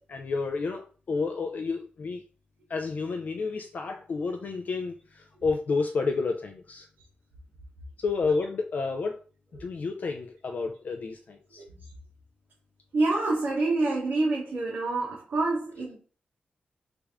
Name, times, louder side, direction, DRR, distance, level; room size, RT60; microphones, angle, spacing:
voice 1, 0.1-2.2 2.7-6.9 8.0-9.1 9.6-11.6, left 4 dB, 55° left, 0.3 m, -30 dB
voice 2, 11.6-11.9 12.9-16.0, right 2 dB, 70° right, 0.9 m, -27 dB
3.3 x 2.5 x 3.4 m
wide cardioid pair, 145°, 3 cm